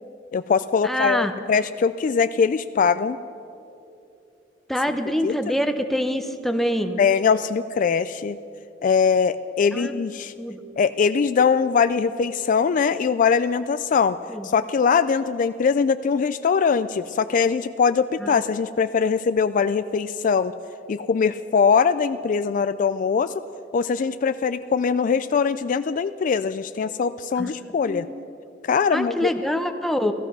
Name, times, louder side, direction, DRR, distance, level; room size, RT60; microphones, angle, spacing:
voice 1, 0.3-3.2 5.2-5.5 7.0-8.4 8.8-10.3 10.8-14.2 14.4-20.5 20.9-23.3 23.7-28.1 28.6-29.3, left 6 dB, 45° left, 12 dB, 0.3 m, -22 dB
voice 2, 0.8-1.3 4.7-7.0 9.7-9.9 10.4-10.6 14.3-14.4 18.2-18.3 27.4-27.5 27.8-28.1 28.9-30.1, equal, ahead, 6 dB, 0.8 m, -25 dB
15.5 x 14.5 x 6.1 m, 2.7 s
head